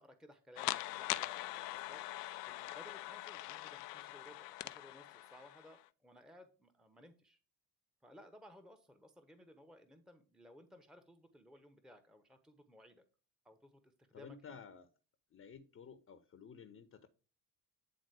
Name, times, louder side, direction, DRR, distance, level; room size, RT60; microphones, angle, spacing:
voice 1, 0.0-7.4 8.0-13.0 13.4-14.6, left 1 dB, ahead, 0.9 m, -59 dB
sound 1, 0.6-5.8, left 17 dB, 70° left, 0.6 m, -42 dB
voice 2, 14.1-14.9 15.3-17.1, left 6 dB, 30° left, 0.9 m, -53 dB
9.4 x 3.9 x 4.8 m
figure-of-eight pair, 60°, 49 cm